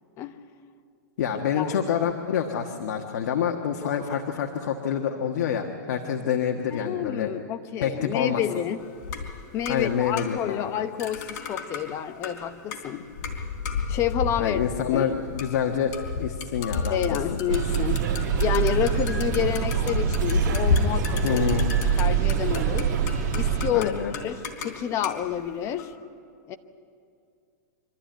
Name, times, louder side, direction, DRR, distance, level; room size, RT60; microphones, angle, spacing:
voice 1, 1.2-7.3 7.8-8.4 9.7-10.7 14.4-17.2 21.2-21.7 23.7-24.1, left 8 dB, 70° left, 3 dB, 1.4 m, -27 dB
voice 2, 6.7-8.8 9.5-13.1 13.9-14.6 14.9-15.1 16.9-18.1 18.4-21.4 22.0-22.9 23.3-23.9 24.2-25.9 26.5-26.6, left 10 dB, 30° left, 9 dB, 0.9 m, -29 dB
sound 1, 8.8-10.6 11.0-25.9, left 4 dB, 55° left, 3.7 m, -32 dB
sound 2, 17.5-23.7, right 8 dB, 50° right, 1.7 m, -25 dB
sound 3, 17.7-23.5, right 7 dB, 80° right, 2.3 m, -40 dB
25.0 x 13.0 x 9.2 m, 2.4 s
supercardioid pair, 150°, 10 cm